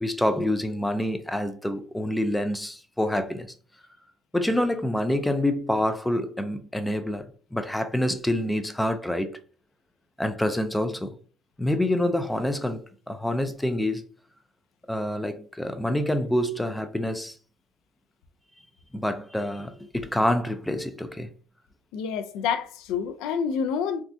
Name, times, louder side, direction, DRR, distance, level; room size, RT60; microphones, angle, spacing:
voice 1, 0.0-3.5 4.3-7.3 7.5-9.3 10.2-11.1 11.6-12.8 13.1-14.0 14.9-17.3 18.9-21.3, left 1 dB, 5° left, 0.3 m, -27 dB
voice 2, 21.9-24.0, left 7 dB, 80° left, 0.4 m, -28 dB
3.5 x 2.3 x 2.5 m
cardioid pair, 115°, 0 cm